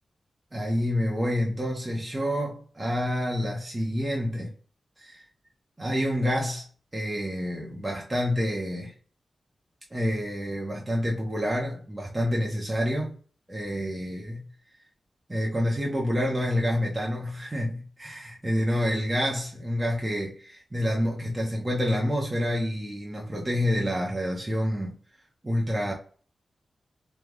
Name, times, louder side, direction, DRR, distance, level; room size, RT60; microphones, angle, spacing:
voice 1, 0.5-4.5 5.0-5.2 5.8-6.6 6.9-8.9 9.9-13.1 13.5-14.4 15.3-24.9 25.4-25.9, equal, 15° right, 0.7 m, -28 dB
3.0 x 2.2 x 3.6 m
wide cardioid pair, 150°, 0 cm